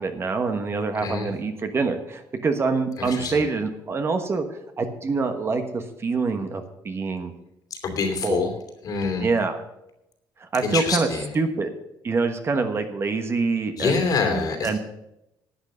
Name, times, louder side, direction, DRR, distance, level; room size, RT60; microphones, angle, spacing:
voice 1, 0.0-4.4 4.8-7.3 8.2-8.5 9.2-9.6 10.4-11.1 11.3-11.7 12.0-14.8, right 4 dB, 30° right, 7 dB, 1.2 m, -25 dB
voice 2, 0.9-1.3 3.0-3.5 7.7-8.5 8.8-9.3 10.6-11.3 13.8-14.8, left 5 dB, 50° left, 5 dB, 2.7 m, -26 dB
11.5 x 8.3 x 6.7 m, 0.87 s
cardioid pair, 125°, 8 cm